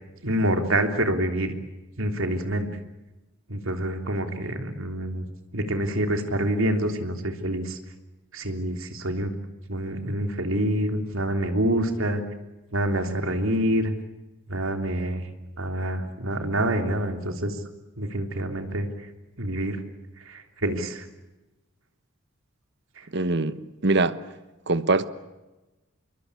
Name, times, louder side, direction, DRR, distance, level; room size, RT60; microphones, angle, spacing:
voice 1, 0.2-1.5 2.0-2.7 3.5-5.2 5.5-7.8 8.3-9.3 9.7-12.2 12.7-13.9 14.5-15.2 15.6-17.5 18.0-18.9 19.4-19.8 20.3-21.0, right 1 dB, 75° right, 3.3 m, -26 dB
voice 2, 23.1-23.6 23.8-24.2 24.7-25.0, right 3 dB, 55° right, 1.2 m, -22 dB
27.0 x 23.0 x 8.5 m
head